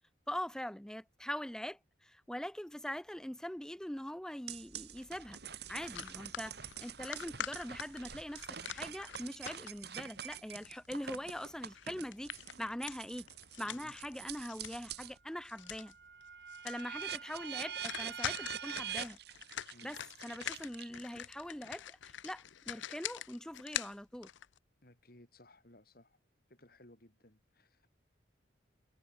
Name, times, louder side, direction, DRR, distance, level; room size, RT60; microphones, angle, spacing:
voice 1, 0.3-5.4 5.7-13.3 13.6-15.9 16.6-19.2 19.8-24.3, equal, 5° left, 0.5 m, -43 dB
sound 1, 4.5-15.2 15.6-21.2, right 8 dB, 55° right, 2.1 m, -45 dB
sound 2, 5.8-9.9 10.3-15.0 15.3-15.9 16.2-16.3 16.5-17.0 17.3-17.5 17.8-24.6, left 10 dB, 75° left, 0.6 m, -44 dB
voice 2, 24.8-26.1 26.6-27.9, left 1 dB, 50° left, 3.0 m, -60 dB
head